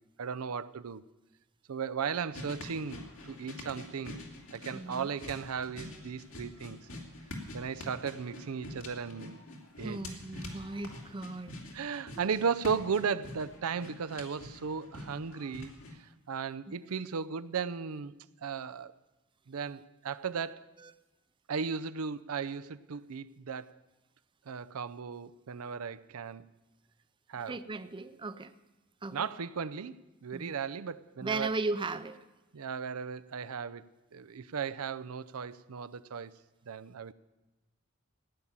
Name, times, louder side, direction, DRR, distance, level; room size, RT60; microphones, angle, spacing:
voice 1, 0.2-1.0 1.7-4.2 4.5-6.9 7.5-9.4 9.8-10.2 11.7-18.1 18.4-19.0 19.5-20.7 21.5-23.8 24.5-26.5 27.3-27.6 29.1-31.5 32.5-33.8 34.1-36.3 36.7-37.1, right 6 dB, 90° right, 0.5 m, -36 dB
sound 1, 2.3-15.9, left 2 dB, 70° left, 2.7 m, -46 dB
voice 2, 4.7-5.1 9.8-11.6 12.2-12.3 20.8-20.9 27.5-28.5 29.0-29.2 30.3-30.5 31.2-32.2, right 3 dB, 20° right, 0.5 m, -36 dB
16.0 x 10.0 x 7.4 m
head